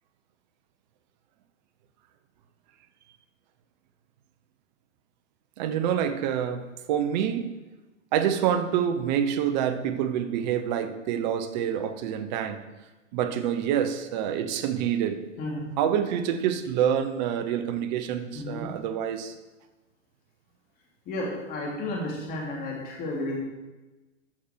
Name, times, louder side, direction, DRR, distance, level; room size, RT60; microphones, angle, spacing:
voice 1, 5.6-7.6 8.1-12.6 13.1-15.2 15.8-19.3, right 9 dB, 35° right, 9 dB, 0.9 m, -27 dB
voice 2, 18.3-18.7 21.1-23.4, left 1 dB, 20° left, -3 dB, 3.0 m, -32 dB
13.0 x 6.6 x 4.6 m, 1.1 s
hypercardioid pair, 145°, 40 cm